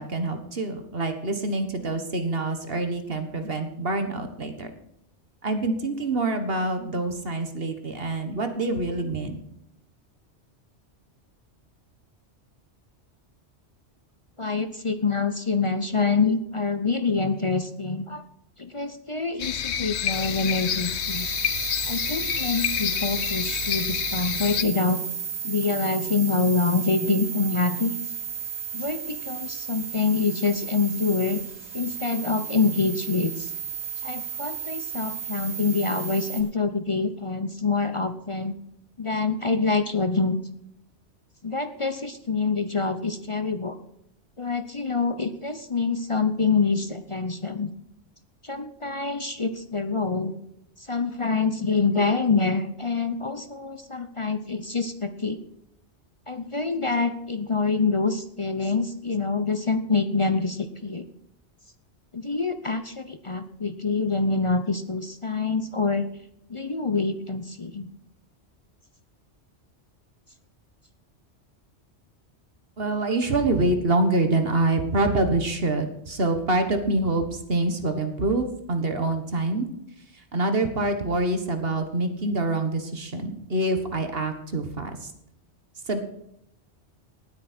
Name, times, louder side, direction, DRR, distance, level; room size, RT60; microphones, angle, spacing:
voice 1, 0.0-4.7 5.4-9.4 72.8-79.7 80.1-85.1 85.9-86.0, right 2 dB, 55° right, 7 dB, 1.7 m, -26 dB
voice 2, 14.4-18.2 18.6-21.3 21.9-25.0 25.4-27.9 28.7-31.4 31.7-33.5 34.0-38.6 39.0-40.4 41.4-43.8 44.4-47.7 48.4-50.3 50.8-55.4 56.3-61.1 62.1-66.1 66.5-67.9, left 4 dB, 30° left, 10 dB, 0.8 m, -26 dB
sound 1, 19.4-24.6, left 9 dB, 75° left, 1.1 m, -28 dB
sound 2, 20.1-36.4, right 7 dB, 35° right, 4.1 m, -33 dB
19.0 x 8.8 x 4.4 m, 0.78 s
omnidirectional pair, 1.2 m